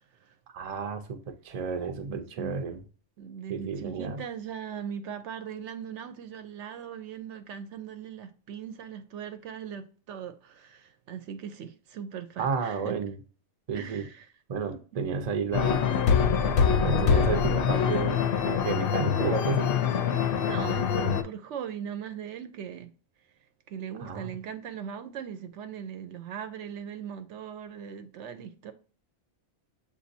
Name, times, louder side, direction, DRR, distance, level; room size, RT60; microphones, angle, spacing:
voice 1, 0.5-2.8 3.5-4.2 12.4-13.2 13.7-14.1 14.5-15.9 16.4-19.7 24.0-24.4, right 5 dB, 40° right, 0.6 m, -32 dB
voice 2, 2.1-2.6 3.2-13.0 13.7-14.3 14.7-15.0 20.4-22.9 23.7-28.7, right 8 dB, 75° right, 0.9 m, -39 dB
sound 1, 15.5-21.2, left 7 dB, 60° left, 0.7 m, -24 dB
6.7 x 2.6 x 2.6 m
omnidirectional pair, 1.3 m